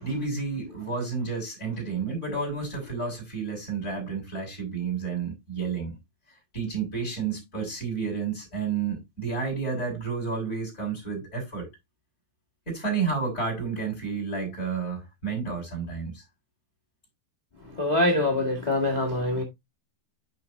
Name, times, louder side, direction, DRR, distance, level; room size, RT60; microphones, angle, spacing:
voice 1, 0.0-6.0 6.5-11.7 12.7-16.2, right 5 dB, 20° left, 5.9 m, -31 dB
voice 2, 17.8-19.4, left 1 dB, 35° left, 0.6 m, -24 dB
10.5 x 5.9 x 2.7 m
omnidirectional pair, 4.3 m